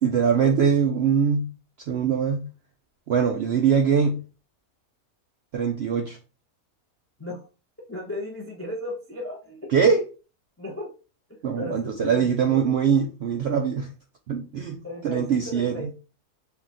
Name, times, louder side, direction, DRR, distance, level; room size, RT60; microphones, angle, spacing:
voice 1, 0.0-1.5 1.9-2.5 3.1-4.2 5.5-6.2 9.7-10.0 11.4-13.9 14.3-15.9, right 7 dB, 70° right, 3 dB, 0.6 m, -22 dB
voice 2, 7.9-9.7 10.6-10.9 11.3-12.8 14.8-15.9, left 1 dB, 20° left, -1 dB, 0.3 m, -36 dB
3.5 x 2.4 x 3.8 m, 0.33 s
omnidirectional pair, 1.6 m